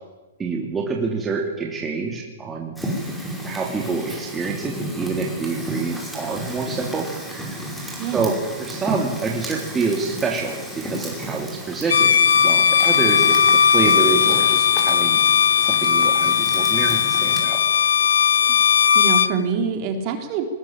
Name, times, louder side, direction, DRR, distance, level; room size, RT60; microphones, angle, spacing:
voice 1, 0.4-2.7 3.4-7.1 7.3-7.5 8.1-12.1 12.4-15.2 15.6-17.6, right 4 dB, 15° right, 0 dB, 3.2 m, -27 dB
Fire, 2.8-17.4, equal, ahead, 5.7 m, -33 dB
voice 2, 8.0-8.3 18.5-18.6 18.9-20.5, right 6 dB, 40° right, 5 dB, 4.2 m, -25 dB
Bowed string instrument, 11.8-19.3, left 7 dB, 85° left, 1.0 m, -17 dB
21.5 x 20.0 x 9.0 m, 1.2 s
hypercardioid pair, 140°, 0 cm